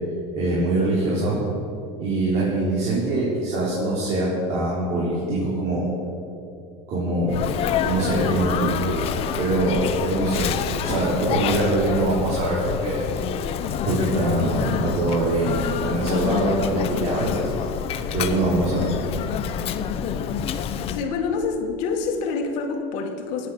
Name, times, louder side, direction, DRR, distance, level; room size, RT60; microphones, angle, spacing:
voice 1, 0.3-1.4 2.0-5.9 6.9-7.4 7.8-13.0 13.8-17.6 18.1-18.9, right 2 dB, 50° right, -7 dB, 4.5 m, -23 dB
Sneeze, 7.3-21.1, left 8 dB, 45° left, 0.8 m, -27 dB
voice 2, 20.9-23.5, left 4 dB, 60° left, 4 dB, 2.0 m, -27 dB
19.0 x 8.9 x 6.7 m, 2.6 s
supercardioid pair, 140°, 14 cm